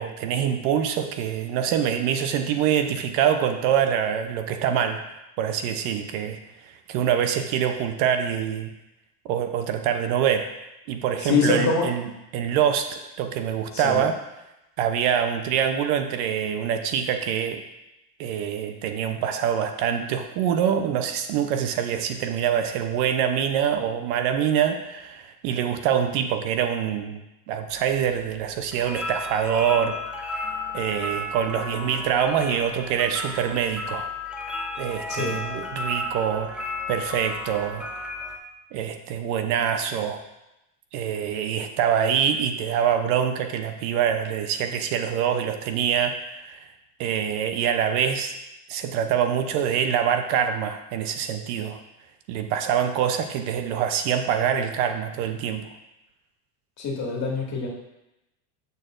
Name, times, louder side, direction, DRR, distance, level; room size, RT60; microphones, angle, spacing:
voice 1, 0.0-5.0 5.4-6.4 6.9-8.7 9.3-10.4 10.9-14.2 14.8-17.6 18.2-27.2 27.5-30.0 30.3-30.4 30.7-34.1 34.8-37.9 38.7-40.2 40.9-46.7 47.0-48.3 48.7-51.8 52.3-55.7, right 8 dB, 60° right, 7 dB, 0.8 m, -25 dB
voice 2, 11.2-11.8 13.7-14.1 35.1-35.3 56.8-57.7, left 4 dB, 35° left, -2 dB, 2.0 m, -24 dB
sound 1, 27.7-38.4, left 2 dB, ahead, 0.6 m, -34 dB
8.3 x 6.7 x 2.5 m, 0.92 s
supercardioid pair, 115°, 48 cm